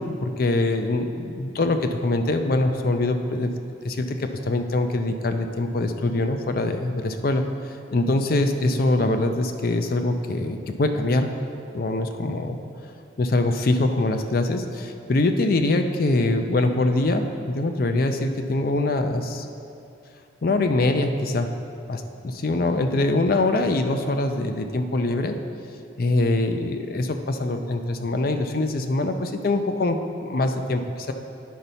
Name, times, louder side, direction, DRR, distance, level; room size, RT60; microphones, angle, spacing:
voice 1, 0.0-3.5 3.8-11.3 11.7-12.6 13.2-19.5 20.4-21.5 21.9-25.4 26.0-31.1, left 2 dB, 50° left, 6 dB, 0.5 m, -23 dB
9.3 x 4.0 x 5.5 m, 2.6 s
head